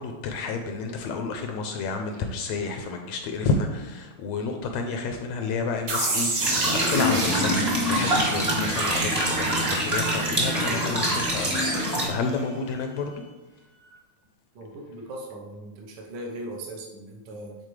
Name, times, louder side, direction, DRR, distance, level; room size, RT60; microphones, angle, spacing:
voice 1, 0.0-13.2, left 4 dB, 80° left, 4 dB, 1.6 m, -30 dB
sound 1, 5.9-12.7, right 1 dB, 65° right, 2.6 m, -29 dB
sound 2, 6.4-12.1, right 1 dB, 40° right, 0.5 m, -26 dB
voice 2, 14.5-17.6, right 1 dB, 80° right, 0 dB, 0.9 m, -39 dB
9.7 x 4.0 x 3.2 m, 1.1 s
omnidirectional pair, 3.3 m